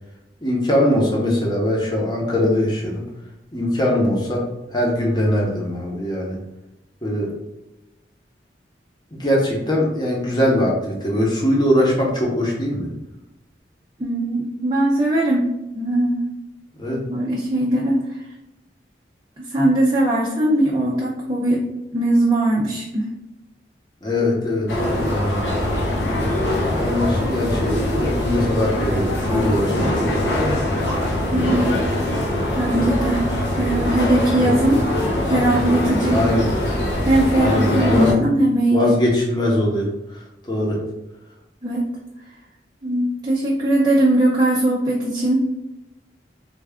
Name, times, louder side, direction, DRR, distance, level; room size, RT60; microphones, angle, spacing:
voice 1, 0.4-3.0 3.5-6.4 7.0-7.3 9.1-12.9 16.8-17.0 24.0-25.4 26.1-30.4 34.3-34.6 36.1-36.5 37.3-38.3 38.7-40.8, left 1 dB, 25° left, -2 dB, 0.8 m, -21 dB
voice 2, 14.0-15.4 15.7-16.3 17.1-18.0 19.5-21.6 21.9-23.1 31.3-31.7 32.5-33.2 33.6-34.8 35.2-36.2 37.0-38.9 41.6-41.9 42.8-45.4, right 1 dB, 25° right, -4 dB, 0.4 m, -19 dB
sound 1, 24.7-38.1, left 1 dB, 80° left, 0.8 m, -22 dB
3.2 x 2.4 x 3.5 m, 0.93 s
head